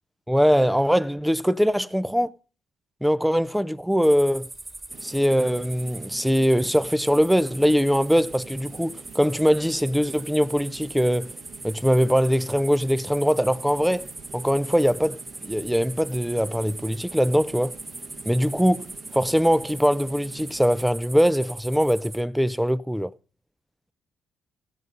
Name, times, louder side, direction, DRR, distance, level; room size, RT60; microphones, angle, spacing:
voice 1, 0.3-2.3 3.0-4.5 5.0-11.3 11.6-14.1 14.3-17.7 18.3-23.1, equal, ahead, 0.5 m, -22 dB
sound 1, 4.0-22.2, right 2 dB, 20° right, 2.4 m, -40 dB
sound 2, 4.9-20.9, right 7 dB, 65° right, 1.2 m, -47 dB
16.5 x 6.4 x 5.3 m
cardioid pair, 90°, 0 cm